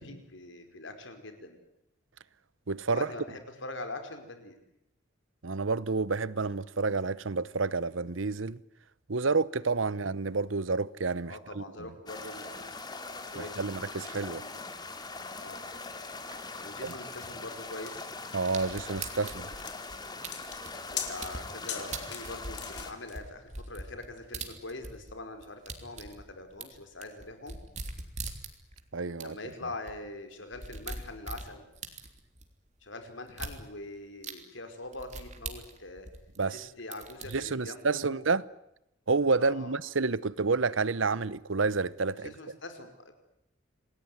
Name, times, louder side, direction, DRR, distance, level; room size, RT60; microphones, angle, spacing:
voice 1, 0.0-1.6 2.9-4.6 9.9-10.1 11.3-12.7 13.3-14.6 15.4-15.6 16.6-18.1 20.9-27.6 29.2-31.7 32.8-36.1 36.5-38.2 39.4-39.8 42.2-43.1, left 2 dB, 75° left, 5.1 m, -43 dB
voice 2, 2.7-3.1 5.4-8.6 9.1-11.6 13.4-14.4 16.8-16.9 18.3-19.5 28.9-29.3 36.4-36.7 37.3-38.4 39.1-42.3, right 4 dB, 80° right, 0.9 m, -29 dB
sound 1, 12.1-22.9, left 3 dB, 20° left, 2.5 m, -42 dB
sound 2, 16.9-23.2, left 9 dB, 55° left, 4.3 m, -41 dB
sound 3, 18.5-21.4 21.9-25.1 25.4-28.8 29.2-29.3 29.5-29.6 29.9-30.0 30.3-32.4 33.3-33.6 34.2-34.3 34.9-36.6 36.9-37.4, right 4 dB, 35° right, 3.4 m, -41 dB
28.0 x 20.0 x 9.7 m
head